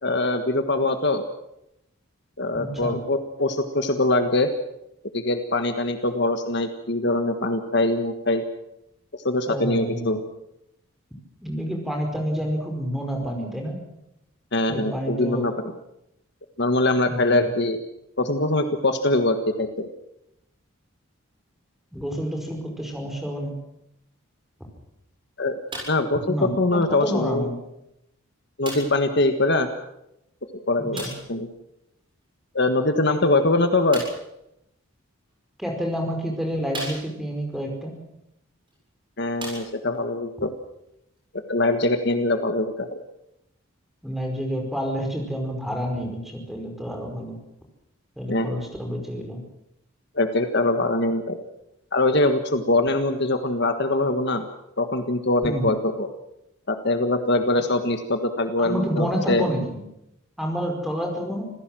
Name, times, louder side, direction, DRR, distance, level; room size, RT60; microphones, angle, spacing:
voice 1, 0.0-1.2 2.4-4.5 5.1-8.4 9.1-10.2 14.5-15.7 16.6-17.8 18.2-19.9 25.4-25.6 25.9-27.5 28.6-29.7 30.7-31.5 32.5-34.0 39.2-40.5 41.5-43.0 48.3-48.5 50.1-51.4 51.9-54.4 54.8-56.1 56.7-59.4, left 2 dB, 50° left, 7 dB, 1.5 m, -23 dB
voice 2, 2.5-3.0 9.5-10.2 11.4-13.8 14.7-15.5 17.1-17.5 21.9-23.5 26.2-27.5 30.8-31.1 35.6-38.0 44.0-47.4 48.2-49.4 55.4-55.7 58.6-59.8 60.4-61.4, equal, ahead, 2 dB, 5.0 m, -29 dB
sound 1, 25.7-26.1 27.0-27.1 28.6-29.1 30.9-31.3 33.9-34.3 35.3-35.4 36.0-36.1 36.7-37.4 38.7-38.8 39.3-40.0 40.9-41.0, right 1 dB, 25° right, 7.3 m, -36 dB
26.5 x 16.5 x 7.7 m, 0.83 s
head